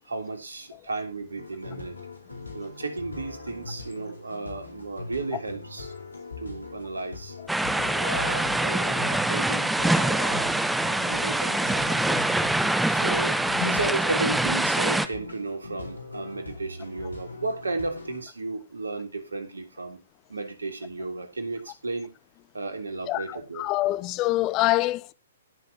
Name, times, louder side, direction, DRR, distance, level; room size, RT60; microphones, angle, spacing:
voice 1, 0.0-2.0 2.5-5.9 6.4-7.3 8.0-10.5 10.8-12.3 12.9-20.0 20.3-22.1 22.5-23.7, right 3 dB, 75° right, 3.3 m, -34 dB
sound 1, 1.4-18.2, left 3 dB, 85° left, 4.4 m, -41 dB
sound 2, 7.5-15.1, right 1 dB, 5° right, 0.9 m, -24 dB
voice 2, 23.1-25.1, left 17 dB, 30° left, 0.6 m, -25 dB
19.5 x 6.8 x 2.9 m
figure-of-eight pair, 120°, 0 cm